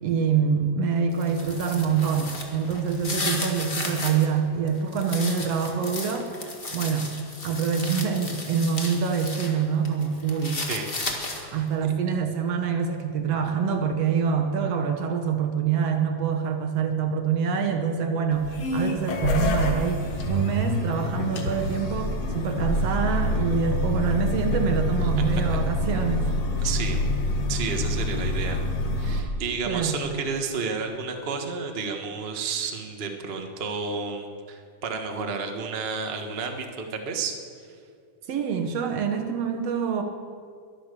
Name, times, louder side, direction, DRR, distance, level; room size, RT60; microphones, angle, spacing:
voice 1, 0.0-6.3 6.7-7.1 7.4-10.7 11.5-26.3 29.7-30.0 38.3-40.0, right 6 dB, 65° right, 5 dB, 1.9 m, -25 dB
sound 1, 1.1-4.3 4.7-9.5 9.8-11.6, left 2 dB, 25° left, 1.4 m, -34 dB
voice 2, 10.6-11.6 11.8-11.9 25.3-25.6 26.6-27.0 27.5-28.6 29.0-37.3, right 5 dB, 40° right, 4 dB, 0.8 m, -31 dB
sound 2, 18.3-29.2, left 1 dB, 60° left, 2.4 m, -26 dB
22.5 x 9.0 x 6.8 m, 2.2 s
omnidirectional pair, 3.5 m